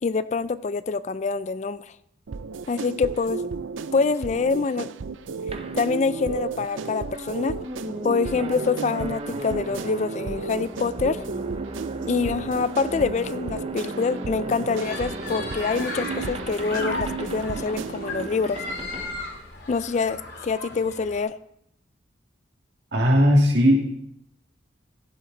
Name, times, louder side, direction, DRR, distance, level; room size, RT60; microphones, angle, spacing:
voice 1, 0.0-1.8 2.7-3.4 3.9-4.9 5.7-7.6 8.0-11.3 12.1-18.6 19.7-21.3, left 4 dB, 35° left, 15 dB, 0.3 m, -25 dB
sound 1, 2.3-18.3, right 5 dB, 85° right, 0.5 m, -34 dB
sound 2, 5.5-20.1, right 1 dB, 30° right, 0.6 m, -36 dB
sound 3, 14.7-21.2, left 3 dB, 55° left, 2.9 m, -36 dB
voice 2, 22.9-23.8, equal, 60° right, 1 dB, 2.2 m, -17 dB
15.0 x 7.8 x 3.9 m, 0.75 s
head